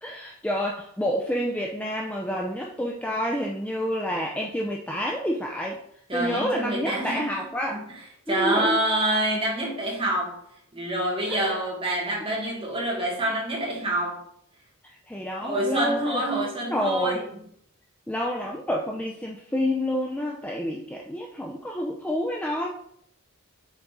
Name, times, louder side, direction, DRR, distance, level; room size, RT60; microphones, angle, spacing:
voice 1, 0.0-5.8 6.1-7.8 8.3-8.8 11.3-11.6 14.8-16.3 16.7-17.2 18.1-22.7, equal, 5° left, -1 dB, 0.4 m, -28 dB
voice 2, 6.1-7.4 7.7-7.8 8.3-10.4 10.7-14.2 15.4-17.3, right 1 dB, 25° right, -3 dB, 1.7 m, -27 dB
7.0 x 3.9 x 3.7 m, 0.68 s
head